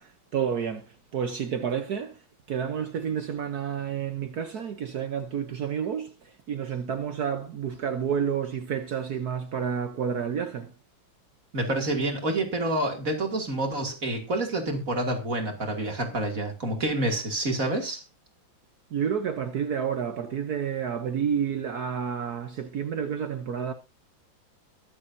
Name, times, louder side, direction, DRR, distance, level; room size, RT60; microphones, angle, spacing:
voice 1, 0.0-2.2 2.5-10.7 18.9-23.7, right 7 dB, 60° right, 1.3 m, -30 dB
voice 2, 11.5-18.0, right 1 dB, 45° right, 3.0 m, -28 dB
22.0 x 7.7 x 2.7 m
omnidirectional pair, 2.1 m